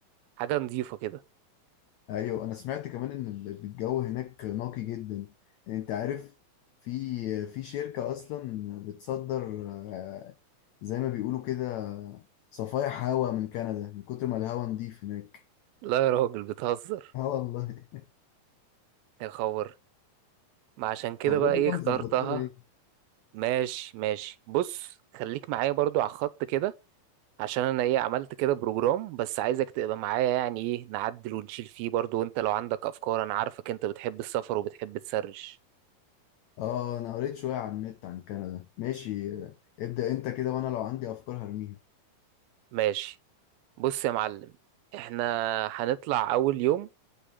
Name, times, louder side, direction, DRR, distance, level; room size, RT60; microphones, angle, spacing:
voice 1, 0.4-1.2 15.8-17.1 19.2-19.7 20.8-22.4 23.3-26.7 27.4-35.6 42.7-43.2 43.8-44.5 44.9-46.9, right 13 dB, 85° right, 2.6 m, -29 dB
voice 2, 2.1-5.3 5.7-6.3 6.8-10.3 10.8-12.2 12.5-15.4 17.1-18.1 21.3-22.5 36.6-41.8, left 12 dB, 85° left, 1.5 m, -33 dB
9.1 x 5.1 x 7.3 m
omnidirectional pair, 4.2 m